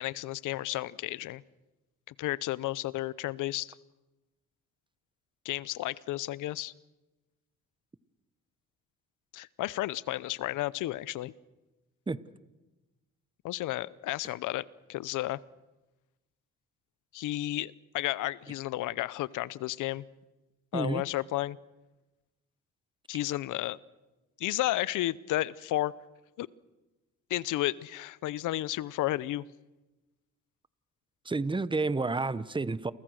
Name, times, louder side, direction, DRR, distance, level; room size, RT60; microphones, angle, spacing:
voice 1, 0.0-1.4 2.2-3.7 5.4-6.7 9.3-11.3 13.4-15.4 17.1-20.0 20.7-21.6 23.1-23.8 24.4-25.9 26.4-26.5 27.3-29.4, left 16 dB, 85° left, 20 dB, 0.7 m, -32 dB
voice 2, 20.7-21.0 31.2-32.9, right 3 dB, 15° right, 16 dB, 1.0 m, -30 dB
29.5 x 24.0 x 6.4 m, 1.1 s
cardioid pair, 90°, 30 cm